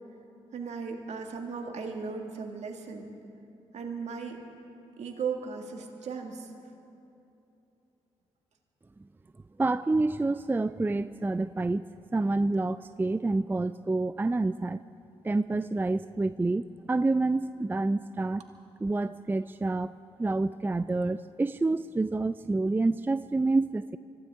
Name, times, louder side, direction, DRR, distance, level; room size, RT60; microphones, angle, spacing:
voice 1, 0.5-3.1 3.7-4.4 5.0-6.5, right 5 dB, 65° right, 3 dB, 2.1 m, -36 dB
voice 2, 9.6-11.8 12.1-14.8 15.2-18.4 18.8-19.9 20.2-24.0, right 2 dB, 15° right, 14 dB, 0.4 m, -28 dB
24.5 x 16.0 x 3.7 m, 2.8 s
hypercardioid pair, 40°, 13 cm